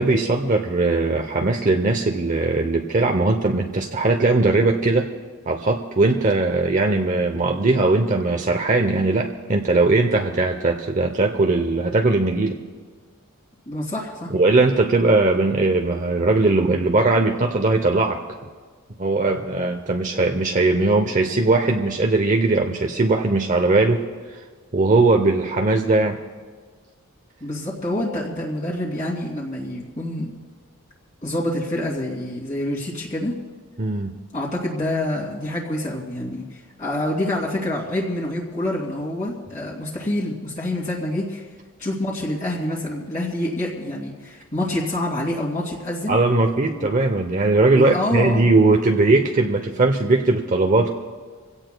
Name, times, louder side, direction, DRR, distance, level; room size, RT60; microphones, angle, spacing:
voice 1, 0.0-5.1 5.5-12.6 14.3-18.2 19.0-24.0 24.7-26.2 33.8-34.2 46.1-50.9, right 2 dB, 35° right, 3 dB, 0.7 m, -19 dB
voice 2, 13.7-14.3 27.4-30.3 31.2-33.3 34.3-41.4 41.8-46.2 46.7-46.9 47.7-48.5, left 1 dB, 35° left, -4 dB, 2.6 m, -27 dB
26.0 x 17.0 x 2.3 m, 1.5 s
head